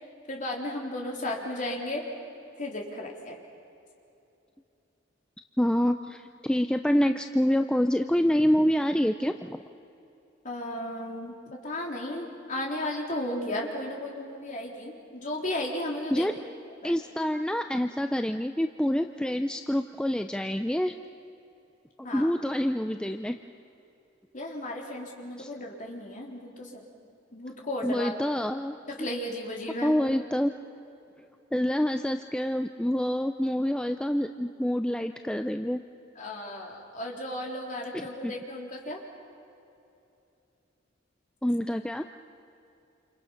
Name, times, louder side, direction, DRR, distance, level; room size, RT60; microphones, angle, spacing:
voice 1, 0.3-2.0 2.6-3.4 10.4-11.3 11.6-16.3 16.8-16.9 22.0-22.3 24.3-26.8 27.3-28.1 29.0-30.0 36.2-39.0, left 1 dB, 40° left, -1 dB, 3.8 m, -34 dB
voice 2, 5.6-9.6 16.1-16.3 16.8-20.9 22.1-23.4 25.4-25.5 27.8-29.1 29.8-30.5 31.5-35.8 37.9-38.3 41.4-42.0, equal, 5° left, 7 dB, 0.5 m, -27 dB
28.5 x 28.0 x 5.8 m, 2.8 s
head